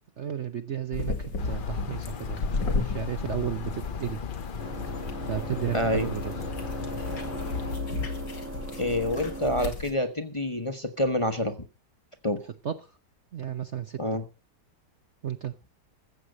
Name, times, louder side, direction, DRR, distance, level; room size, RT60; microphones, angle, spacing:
voice 1, 0.2-4.2 5.3-6.3 12.6-12.9 13.3-14.0 15.2-15.6, right 9 dB, 50° right, 1.0 m, -33 dB
sound 1, 0.9-9.9, left 3 dB, 90° left, 2.8 m, -34 dB
sound 2, 1.4-7.8, left 7 dB, 50° left, 0.6 m, -37 dB
sound 3, 4.6-9.7, right 2 dB, 10° right, 1.2 m, -38 dB
voice 2, 5.7-6.1 8.8-11.6 12.2-12.4 14.0-14.2, left 1 dB, 20° left, 1.1 m, -27 dB
14.5 x 8.0 x 6.5 m
omnidirectional pair, 1.9 m